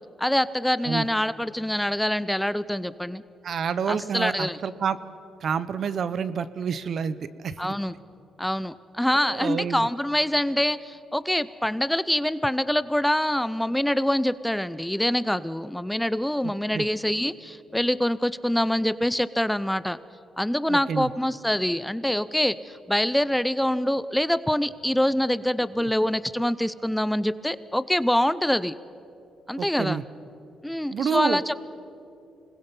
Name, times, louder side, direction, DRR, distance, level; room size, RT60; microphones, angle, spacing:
voice 1, 0.2-3.2 3.9-4.6 7.6-7.9 8.4-20.0 20.4-28.7 29.5-30.0 30.6-31.6, left 1 dB, 5° left, 16 dB, 0.5 m, -25 dB
voice 2, 3.4-5.0 5.4-7.2 7.4-7.6 9.2-9.9 16.7-16.8 20.7-21.1 25.8-25.9 29.6-30.0 30.9-31.4, right 7 dB, 55° right, 15 dB, 0.8 m, -28 dB
26.0 x 20.5 x 5.4 m, 2.8 s
cardioid pair, 90°, 0 cm